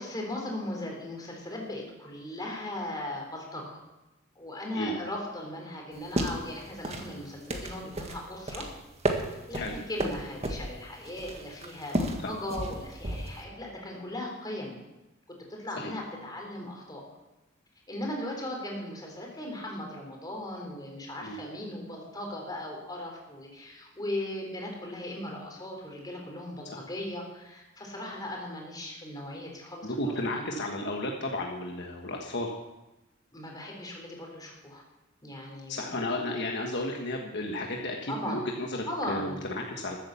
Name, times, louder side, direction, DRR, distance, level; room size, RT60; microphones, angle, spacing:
voice 1, 0.0-3.8 4.4-8.7 9.5-14.7 15.3-17.0 17.9-30.5 33.3-34.8 35.2-36.2 38.1-38.5 38.9-39.4, left 1 dB, 20° left, 0 dB, 3.7 m, -38 dB
sound 1, 5.9-13.4, right 1 dB, 30° right, 1.6 m, -34 dB
voice 2, 29.8-32.5 35.7-40.0, left 1 dB, 60° left, 1 dB, 1.3 m, -33 dB
14.0 x 8.8 x 7.1 m, 1.0 s
head